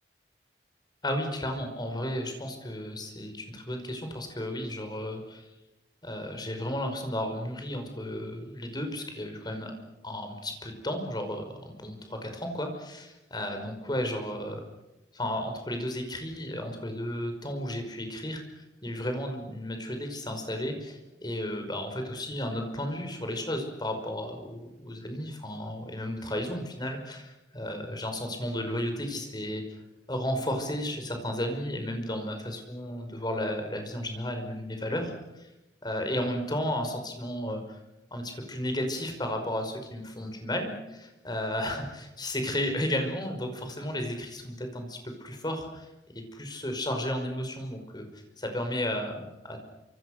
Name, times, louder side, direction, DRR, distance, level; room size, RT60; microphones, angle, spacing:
voice 1, 1.0-5.4 6.0-9.7 10.0-14.6 15.1-29.6 30.1-35.5 35.8-37.8 38.1-45.9 46.3-49.6, left 1 dB, 25° left, 5 dB, 5.3 m, -33 dB
27.5 x 26.0 x 6.5 m, 0.99 s
head